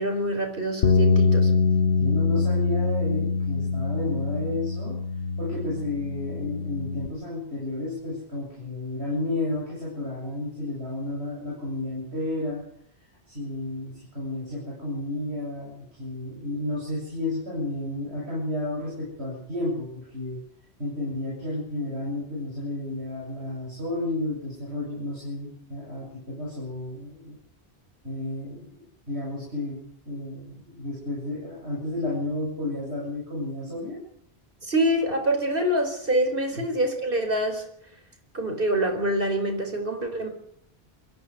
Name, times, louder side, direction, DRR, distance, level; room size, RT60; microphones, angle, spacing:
voice 1, 0.0-1.5 34.6-37.6 38.3-40.3, right 1 dB, 55° right, 5 dB, 4.8 m, -25 dB
sound 1, 0.8-7.1, left 4 dB, 80° left, 1.3 m, -24 dB
voice 2, 2.0-5.0 5.4-12.6 13.3-20.4 20.8-27.4 28.0-34.0 36.5-36.6, left 2 dB, 85° right, -4 dB, 8.4 m, -32 dB
23.5 x 15.5 x 8.1 m, 0.70 s
omnidirectional pair, 1.1 m